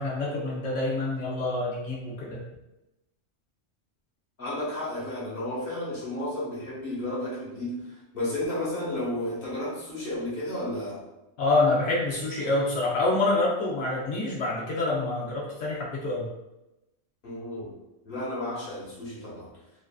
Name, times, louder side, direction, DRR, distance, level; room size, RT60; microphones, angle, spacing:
voice 1, 0.0-2.4 11.4-16.3, left 2 dB, 85° left, -4 dB, 1.0 m, -27 dB
voice 2, 4.4-7.9 8.1-11.0 17.2-17.7 18.0-19.5, left 1 dB, 55° left, -6 dB, 1.1 m, -32 dB
3.0 x 2.4 x 2.3 m, 0.95 s
omnidirectional pair, 1.2 m